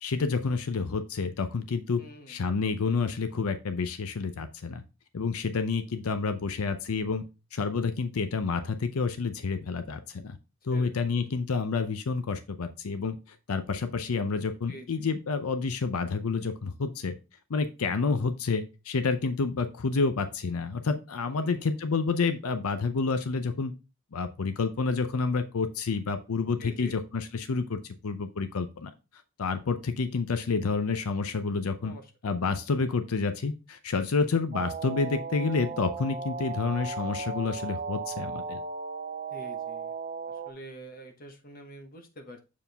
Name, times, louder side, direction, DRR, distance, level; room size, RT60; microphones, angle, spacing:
voice 1, 0.0-2.0 2.3-4.8 5.1-7.2 7.5-10.4 10.6-17.1 17.5-23.7 24.1-28.9 29.4-31.9 32.2-38.6, left 4 dB, 90° left, 10 dB, 0.6 m, -29 dB
voice 2, 2.0-2.4 10.7-11.3 14.7-15.1 21.3-21.8 26.6-27.0 31.8-32.0 39.3-39.9 40.3-42.4, equal, 40° left, 6 dB, 1.2 m, -47 dB
sound 1, 34.5-40.5, right 5 dB, 35° right, 0.5 m, -36 dB
7.3 x 4.6 x 3.4 m, 0.29 s
head